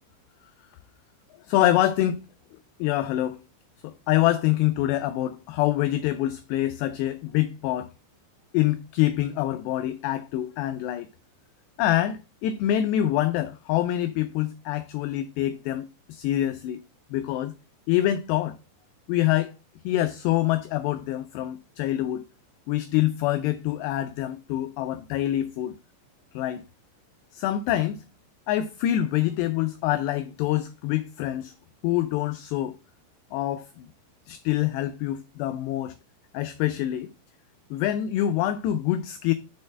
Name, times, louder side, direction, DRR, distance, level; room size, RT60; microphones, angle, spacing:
voice 1, 1.5-2.2 2.8-3.4 3.8-7.9 8.5-11.1 11.8-16.8 17.1-17.5 17.9-18.6 19.1-19.5 19.9-22.2 22.7-25.8 26.3-26.6 27.3-28.0 28.5-31.5 31.8-32.8 33.3-33.9 34.3-36.0 36.3-37.1 37.7-39.3, left 13 dB, 85° left, 2.4 m, -25 dB
6.7 x 4.3 x 5.1 m
omnidirectional pair, 5.4 m